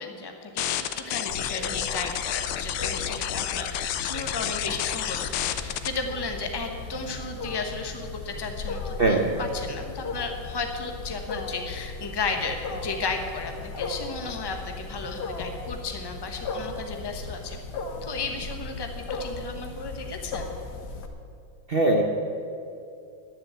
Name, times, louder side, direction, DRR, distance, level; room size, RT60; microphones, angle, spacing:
voice 1, 0.0-17.6 18.0-20.5, left 4 dB, 15° left, 4 dB, 0.8 m, -34 dB
sound 1, 0.6-5.9, left 11 dB, 90° left, 1.6 m, -30 dB
Wild animals, 1.3-21.1, left 3 dB, 55° left, 1.6 m, -37 dB
voice 2, 9.0-9.3 21.7-22.0, right 2 dB, 50° right, 1 dB, 0.7 m, -21 dB
11.0 x 10.0 x 8.2 m, 2.6 s
omnidirectional pair, 2.3 m